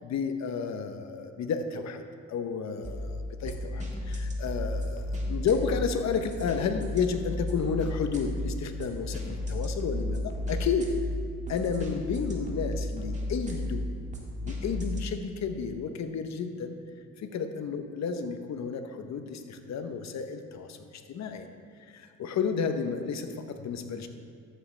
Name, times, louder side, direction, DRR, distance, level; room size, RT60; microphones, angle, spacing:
voice 1, 0.0-5.0 5.3-11.0 11.5-13.9 14.4-16.8 17.2-21.5 21.9-24.1, left 6 dB, 65° left, 8 dB, 0.9 m, -32 dB
sound 1, 2.8-15.0, left 1 dB, 25° right, 1.8 m, -34 dB
13.0 x 7.7 x 3.3 m, 2.3 s
cardioid pair, 90°, 30 cm